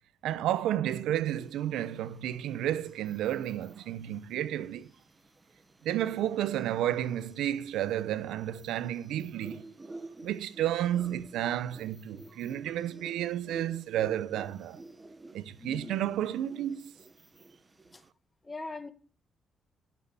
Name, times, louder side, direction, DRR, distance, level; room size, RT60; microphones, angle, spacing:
voice 1, 0.2-4.9 5.8-9.7 10.2-14.8 15.3-16.9, right 12 dB, 85° right, 0.8 m, -31 dB
sound 1, 1.2-18.1, right 2 dB, 20° right, 1.2 m, -51 dB
voice 2, 15.6-15.9 17.9-18.0 18.4-18.9, left 3 dB, 20° left, 1.6 m, -41 dB
12.0 x 6.4 x 8.2 m
cardioid pair, 90°, 0 cm